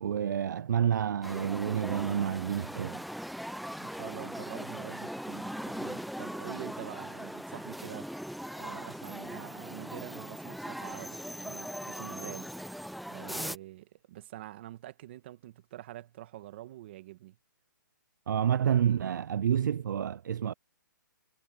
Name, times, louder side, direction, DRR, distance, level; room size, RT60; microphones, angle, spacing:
voice 1, 0.0-3.0 18.3-20.5, right 9 dB, 60° right, 0.4 m, -29 dB
sound 1, 1.2-13.6, equal, ahead, 0.5 m, -40 dB
voice 2, 3.8-8.2 8.6-12.5 13.1-17.4, right 14 dB, 30° right, 1.5 m, -46 dB
hypercardioid pair, 170°, 11 cm